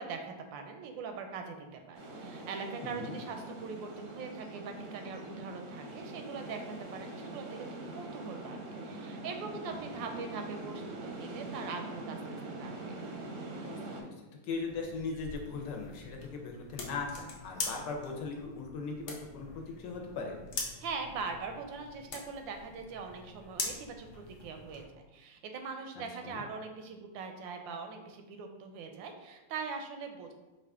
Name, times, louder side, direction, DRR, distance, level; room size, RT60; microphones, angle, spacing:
voice 1, 0.0-12.9 20.8-24.8 25.1-30.3, right 5 dB, 90° right, 5 dB, 1.3 m, -42 dB
sound 1, 1.9-14.0, right 2 dB, 65° right, 0.8 m, -43 dB
voice 2, 2.8-3.1 9.7-10.0 13.7-20.4 26.2-26.4, left 4 dB, 75° left, 2 dB, 1.3 m, -39 dB
sound 2, 14.5-24.9, left 4 dB, 55° left, 0.9 m, -43 dB
4.8 x 2.4 x 3.5 m, 1.1 s
omnidirectional pair, 2.0 m